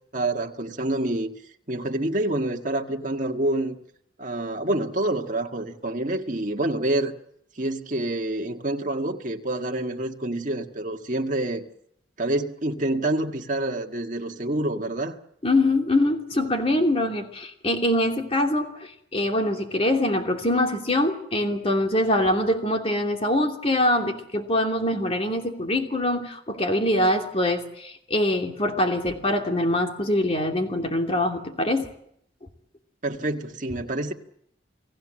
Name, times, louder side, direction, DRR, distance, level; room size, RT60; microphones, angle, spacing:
voice 1, 0.1-1.3 1.7-3.8 4.2-7.1 7.6-11.6 12.2-15.2 33.0-34.1, right 1 dB, 40° right, 3 dB, 1.8 m, -27 dB
voice 2, 15.4-31.9, left 1 dB, 30° left, 3 dB, 2.8 m, -24 dB
29.0 x 18.5 x 7.6 m, 0.72 s
head